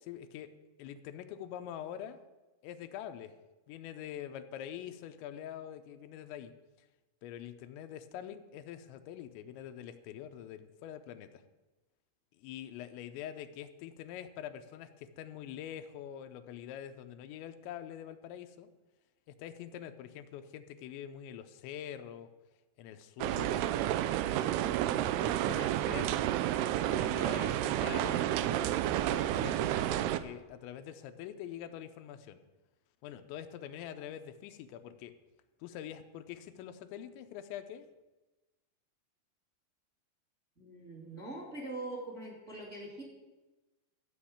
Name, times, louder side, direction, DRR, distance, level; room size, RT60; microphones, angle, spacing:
voice 1, 0.1-0.5 0.8-2.2 2.6-3.4 3.7-6.5 7.2-11.4 12.4-18.7 19.3-22.3 22.8-23.7 24.1-26.2 26.8-28.7 29.1-32.4 33.0-35.1 35.6-37.9, left 10 dB, 85° left, 8 dB, 3.0 m, -45 dB
sound 1, 23.2-30.2, right 12 dB, 90° right, 2.3 m, -30 dB
voice 2, 40.6-43.0, right 2 dB, 25° right, -3 dB, 1.9 m, -42 dB
13.0 x 6.1 x 8.6 m, 1.1 s
omnidirectional pair, 5.2 m